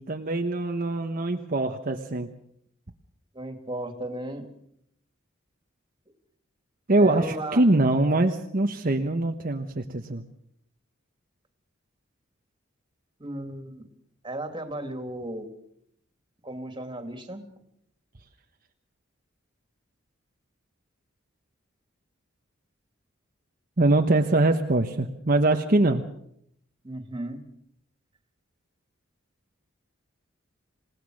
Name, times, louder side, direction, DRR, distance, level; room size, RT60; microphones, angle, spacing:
voice 1, 0.0-2.3 6.9-10.2 23.8-26.0, right 2 dB, 45° right, 4 dB, 1.1 m, -23 dB
voice 2, 3.3-4.5 7.0-7.6 13.2-13.9 14.2-15.5 16.4-17.4 26.8-27.4, right 1 dB, 25° right, 6 dB, 2.7 m, -35 dB
27.5 x 17.5 x 6.5 m, 0.73 s
head